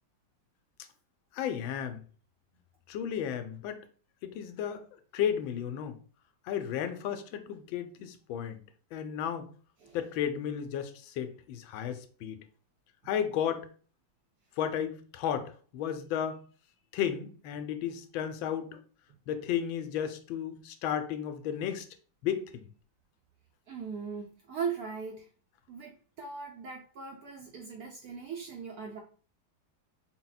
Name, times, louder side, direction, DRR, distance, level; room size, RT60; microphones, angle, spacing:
voice 1, 1.3-2.0 2.9-3.8 4.2-4.8 5.1-6.0 6.5-8.6 8.9-9.5 9.9-12.4 13.1-13.7 14.6-16.4 16.9-18.8 19.3-21.9 22.2-22.7, left 9 dB, 90° left, 1.4 m, -33 dB
voice 2, 23.7-25.3 25.7-29.0, right 6 dB, 75° right, 0.8 m, -39 dB
4.1 x 2.1 x 3.9 m
omnidirectional pair, 2.1 m